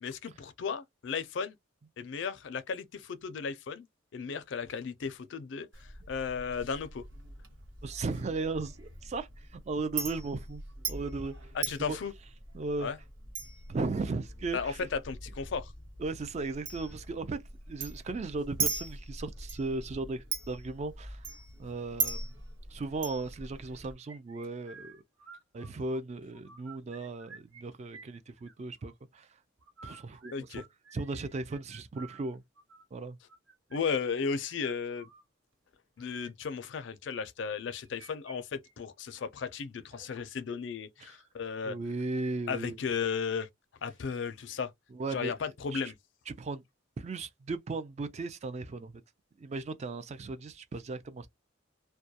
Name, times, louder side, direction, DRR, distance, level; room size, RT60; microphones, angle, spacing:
voice 1, 0.0-1.5 2.0-3.9 4.1-5.7 6.1-7.0 11.6-12.1 12.8-13.0 14.5-14.7 15.1-15.7 30.3-30.6 33.7-35.1 36.0-41.8 42.5-43.5 43.8-44.7 45.1-45.9, left 6 dB, 65° left, 0.4 m, -35 dB
Chink clink, 5.7-23.9, right 4 dB, 70° right, 1.1 m, -40 dB
voice 2, 7.8-10.6 10.9-12.0 12.5-12.9 13.7-14.8 16.0-22.3 22.7-25.0 25.5-29.4 29.8-30.6 30.9-32.4 32.9-33.2 41.0-41.2 41.6-42.8 44.9-45.9 46.3-46.6 47.0-49.0 49.4-51.3, right 3 dB, 35° right, 0.3 m, -36 dB
sound 1, 24.1-26.0 26.3-27.6 27.9-28.9 29.6-35.2 36.0-36.3 37.5-38.4 38.6-38.7 39.2-39.3 39.9-40.2, right 4 dB, 85° right, 1.1 m, -53 dB
2.2 x 2.2 x 2.7 m
head